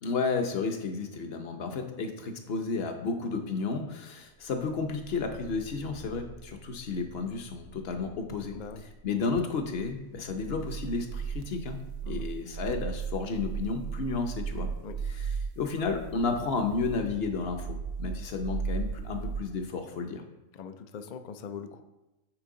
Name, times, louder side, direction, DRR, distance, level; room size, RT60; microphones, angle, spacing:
voice 1, 0.0-8.6 9.0-11.8 12.1-14.7 15.1-15.3 15.6-20.2, left 4 dB, 55° left, 5 dB, 0.9 m, -32 dB
sound 1, 4.7-19.4, right 6 dB, 70° right, 0.9 m, -38 dB
voice 2, 8.5-8.8 12.0-12.3 14.8-15.0 20.5-21.8, left 6 dB, 75° left, 8 dB, 0.4 m, -42 dB
8.9 x 4.4 x 3.8 m, 1.0 s
omnidirectional pair, 1.4 m